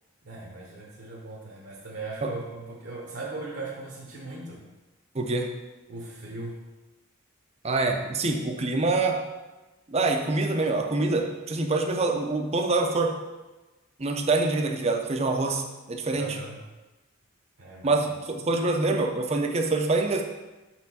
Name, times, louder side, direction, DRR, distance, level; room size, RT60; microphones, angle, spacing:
voice 1, 0.2-4.7 5.9-6.6 16.1-16.6 17.6-18.0, right 3 dB, 55° right, -3 dB, 0.9 m, -38 dB
voice 2, 5.1-5.5 7.6-9.2 9.9-13.1 14.0-16.3 17.8-20.2, right 3 dB, 30° right, 3 dB, 0.5 m, -25 dB
5.5 x 4.4 x 4.1 m, 1.1 s
head